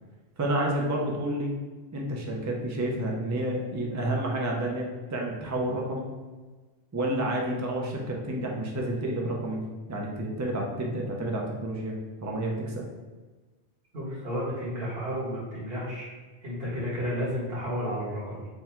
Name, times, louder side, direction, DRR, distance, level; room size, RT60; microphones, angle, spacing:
voice 1, 0.4-1.5 1.9-6.1 6.9-9.6 9.9-12.8, right 1 dB, 30° right, -1 dB, 0.3 m, -30 dB
voice 2, 13.9-16.1 16.4-18.5, equal, 65° right, -7 dB, 1.6 m, -32 dB
3.7 x 2.2 x 4.3 m, 1.3 s
omnidirectional pair, 1.1 m